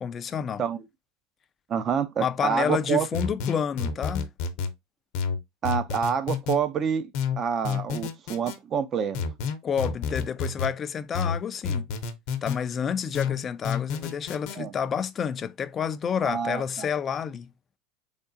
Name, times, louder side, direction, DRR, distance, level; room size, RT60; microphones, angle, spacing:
voice 1, 0.0-0.6 2.2-4.3 9.6-11.8 12.4-17.5, left 7 dB, 30° left, 0.4 m, -29 dB
voice 2, 1.7-3.1 5.6-7.1 7.4-9.2 14.6-14.7 16.2-16.9, right 7 dB, 35° right, 0.6 m, -27 dB
sound 1, 3.1-4.7 5.1-6.6 7.1-8.6 9.1-10.7 11.1-12.6 13.1-14.6, left 6 dB, 65° left, 0.7 m, -29 dB
3.6 x 3.5 x 2.6 m
supercardioid pair, 120°, 0 cm